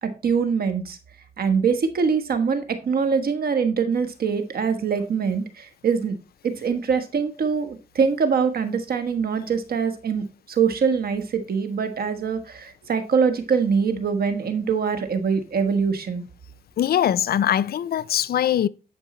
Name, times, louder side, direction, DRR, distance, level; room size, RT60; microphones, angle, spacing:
voice 1, 0.0-1.0 1.4-6.2 6.4-16.2, right 6 dB, 80° right, 1.4 m, -23 dB
voice 2, 16.8-18.7, left 10 dB, 85° left, 0.4 m, -22 dB
10.5 x 5.4 x 4.3 m
cardioid pair, 70°, 16 cm